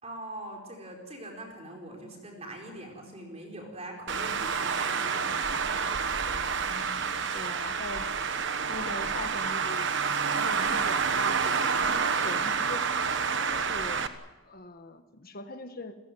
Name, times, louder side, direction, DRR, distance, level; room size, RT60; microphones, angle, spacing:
voice 1, 0.0-5.7, right 1 dB, 30° right, 1 dB, 4.6 m, -42 dB
voice 2, 4.0-4.5 6.7-8.1 8.6-9.9 10.3-12.9 13.4-14.0 14.4-16.0, left 2 dB, 40° left, 8 dB, 1.5 m, -42 dB
Traffic noise roadway noise, 4.1-14.1, right 5 dB, 55° right, 1.2 m, -28 dB
29.5 x 15.5 x 9.3 m, 1.1 s
head